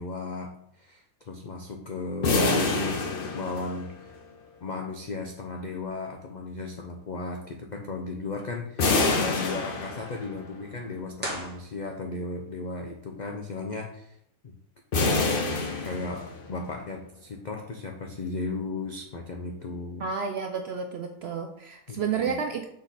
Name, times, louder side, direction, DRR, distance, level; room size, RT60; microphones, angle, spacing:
voice 1, 0.0-4.1 4.6-14.2 14.4-14.5 15.0-15.3 15.8-20.0 21.9-22.2, left 3 dB, 75° left, 3 dB, 0.4 m, -35 dB
sound 1, 2.2-4.1 8.8-10.4 14.9-16.6, left 3 dB, 45° left, 0.8 m, -26 dB
sound 2, 11.2-12.4, right 1 dB, 5° right, 1.5 m, -37 dB
voice 2, 20.0-22.6, right 6 dB, 70° right, 4 dB, 0.6 m, -31 dB
6.2 x 3.8 x 4.0 m, 0.74 s
omnidirectional pair, 1.5 m